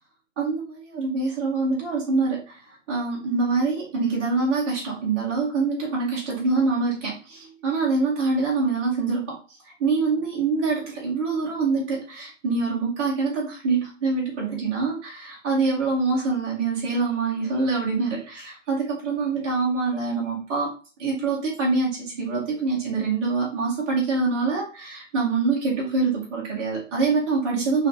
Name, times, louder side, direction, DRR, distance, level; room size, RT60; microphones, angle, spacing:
voice 1, 0.4-2.6 2.9-9.4 9.8-20.7 21.0-27.9, right 4 dB, 10° right, -6 dB, 0.8 m, -25 dB
4.0 x 3.3 x 4.1 m, 0.35 s
hypercardioid pair, 170°, 38 cm